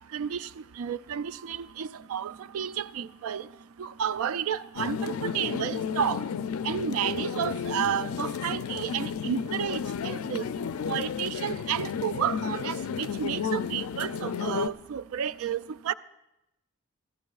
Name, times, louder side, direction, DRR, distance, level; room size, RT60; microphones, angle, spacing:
voice 1, 0.1-0.5 0.8-3.5 3.8-6.2 6.6-10.5 10.9-15.9, right 8 dB, 80° right, 0.3 m, -31 dB
sound 1, 4.8-14.7, left 7 dB, 90° left, 0.4 m, -32 dB
22.5 x 14.5 x 2.4 m
head